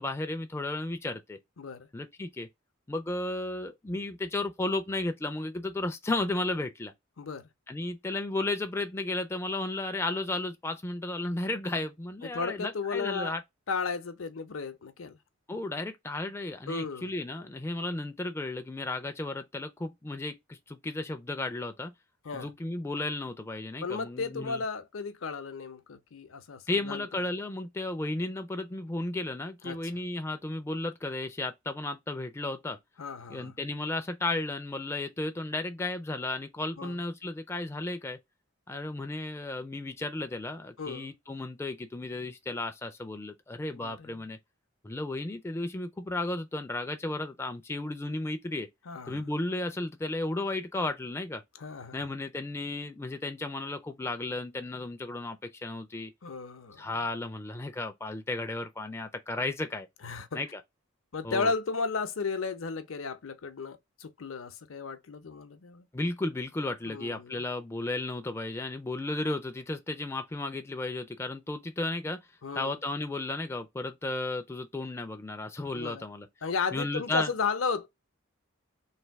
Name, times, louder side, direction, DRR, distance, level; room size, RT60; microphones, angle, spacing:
voice 1, 0.0-1.4 1.9-2.5 2.9-6.9 7.7-13.4 15.5-21.9 22.3-24.6 26.7-32.8 33.3-38.2 38.7-44.4 44.8-48.7 49.1-51.4 51.9-56.1 56.8-59.9 60.3-60.6 61.2-61.5 65.9-72.2 72.5-76.3 76.7-77.3, left 2 dB, 10° left, 0.4 m, -34 dB
voice 2, 1.6-1.9 7.2-7.5 12.2-13.3 13.7-15.2 16.7-17.1 22.2-22.5 23.8-27.1 29.6-29.8 33.0-33.5 36.8-37.0 40.8-41.1 43.7-44.2 48.9-49.3 51.6-52.0 56.2-56.8 60.0-60.4 61.1-65.9 66.9-67.4 72.4-72.7 75.7-76.0 76.4-77.9, left 4 dB, 70° left, 0.7 m, -34 dB
3.3 x 2.6 x 4.5 m
head